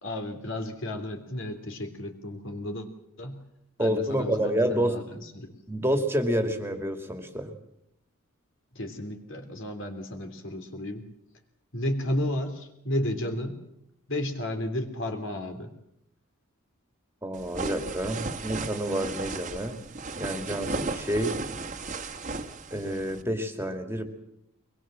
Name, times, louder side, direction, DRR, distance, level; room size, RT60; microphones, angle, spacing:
voice 1, 0.0-2.9 3.2-3.4 3.8-5.5 8.7-11.0 11.7-13.6 14.1-15.7, left 1 dB, 60° left, 6 dB, 3.2 m, -33 dB
voice 2, 3.8-5.0 5.7-7.5 17.2-19.8 20.2-21.4 22.7-24.1, equal, 10° right, 6 dB, 2.3 m, -28 dB
sound 1, 17.3-23.2, right 3 dB, 35° right, 1.6 m, -35 dB
23.0 x 21.5 x 7.6 m, 0.78 s
head